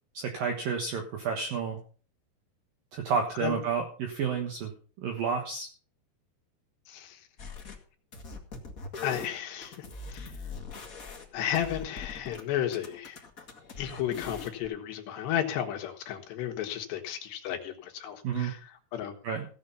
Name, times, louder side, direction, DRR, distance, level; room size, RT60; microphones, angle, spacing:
voice 1, 0.1-1.8 2.9-4.7 5.0-5.7 18.2-18.5 19.2-19.5, right 6 dB, 60° right, 4 dB, 2.7 m, -30 dB
voice 2, 6.9-7.2 9.0-10.3 11.3-13.2 13.8-19.2, left 10 dB, 70° left, 4 dB, 3.5 m, -33 dB
sound 1, 7.4-7.8 8.1-12.4 12.7-14.7, left 4 dB, 90° left, 0.7 m, -42 dB
16.0 x 7.7 x 5.6 m, 0.40 s
omnidirectional pair, 5.3 m